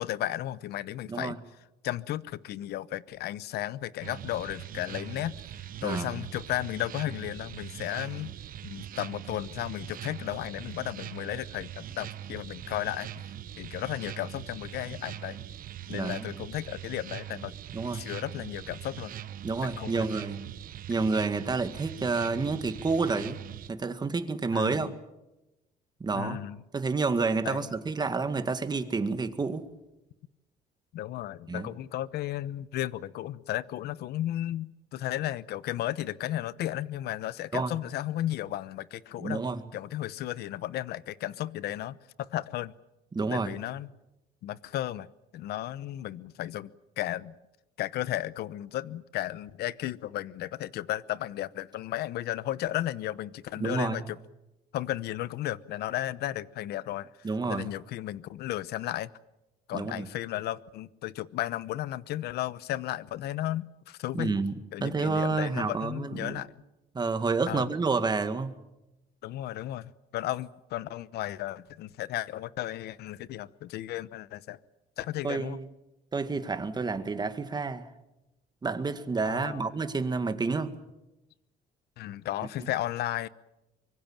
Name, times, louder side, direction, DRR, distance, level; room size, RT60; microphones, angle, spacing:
voice 1, 0.0-1.4 1.8-8.3 8.6-13.3 13.6-15.4 15.9-17.5 17.9-19.1 19.6-20.1 24.5-24.9 26.1-26.6 27.4-27.7 30.9-39.4 39.7-42.7 43.3-43.9 44.4-45.1 45.3-46.7 47.0-47.3 47.8-54.2 54.7-59.1 59.7-64.4 64.7-66.5 67.5-67.7 69.2-74.6 75.0-75.6 79.2-79.6 82.0-83.3, left 14 dB, 75° left, 0.9 m, -34 dB
sound 1, 4.0-23.7, right 11 dB, 55° right, 1.1 m, -42 dB
voice 2, 5.8-6.1 15.9-16.3 17.7-18.0 19.4-20.4 20.9-23.4 23.7-24.9 26.0-26.4 26.7-29.7 31.5-31.7 37.5-37.7 39.2-39.6 43.1-43.5 53.6-54.0 57.2-57.7 59.7-60.1 64.1-64.5 64.8-66.4 66.9-68.5 75.2-75.7 76.1-77.9 78.6-80.7, right 4 dB, 25° right, 2.0 m, -29 dB
24.5 x 23.0 x 7.4 m
cardioid pair, 110°, 17 cm